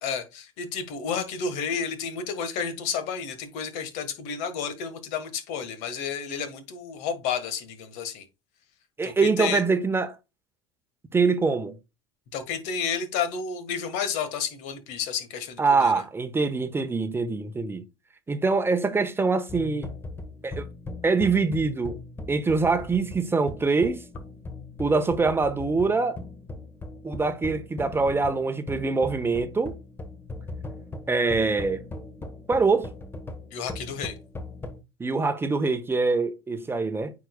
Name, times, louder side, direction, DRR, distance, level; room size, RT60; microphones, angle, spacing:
voice 1, 0.0-8.2 9.0-9.6 12.3-16.0 33.5-34.2, left 6 dB, 60° left, 1.7 m, -31 dB
voice 2, 9.0-10.2 11.1-11.8 15.6-17.8 18.3-19.9 20.4-20.6 21.0-22.0 22.3-24.0 24.8-26.2 27.0-29.8 31.1-31.8 32.5-32.9 35.0-37.1, right 4 dB, 15° right, 0.9 m, -24 dB
sound 1, 19.5-34.8, left 2 dB, 15° left, 1.3 m, -39 dB
9.0 x 4.9 x 2.3 m
hypercardioid pair, 75°, 14 cm